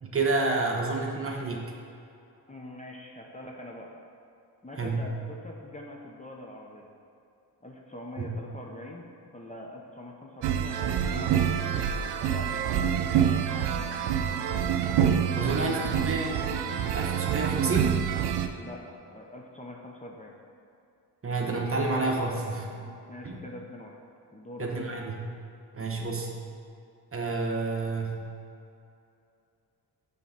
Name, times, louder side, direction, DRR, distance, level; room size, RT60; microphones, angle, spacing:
voice 1, 0.0-1.7 4.8-5.0 8.2-8.3 15.3-16.5 16.9-17.9 21.2-22.7 23.2-23.4 24.6-25.2 25.7-26.3 27.1-28.3, right 3 dB, 35° right, 0 dB, 1.0 m, -29 dB
voice 2, 2.5-3.9 4.6-6.9 7.6-9.0 9.3-11.7 12.2-13.3 15.3-16.0 18.6-20.3 22.8-24.0 24.3-25.0, left 1 dB, 20° left, -1 dB, 0.8 m, -44 dB
sound 1, 10.4-18.5, right 8 dB, 90° right, 0.5 m, -27 dB
7.1 x 3.4 x 5.8 m, 2.6 s
cardioid pair, 70°, 40 cm